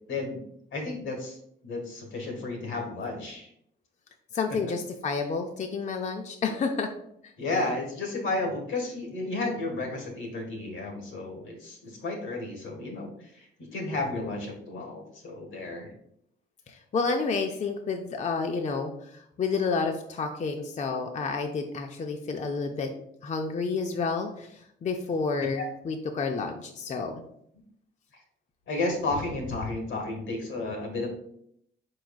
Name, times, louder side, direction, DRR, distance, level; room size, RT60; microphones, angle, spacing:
voice 1, 0.1-0.4 0.7-1.4 1.6-3.5 4.7-4.8 7.4-13.5 13.7-15.9 25.5-25.6 28.7-31.1, left 2 dB, 80° left, 2 dB, 1.5 m, -32 dB
voice 2, 4.3-6.9 7.2-7.3 16.7-22.9 23.2-27.1, left 4 dB, 35° left, 4 dB, 0.5 m, -30 dB
4.7 x 4.7 x 2.3 m, 0.72 s
cardioid pair, 90°, 20 cm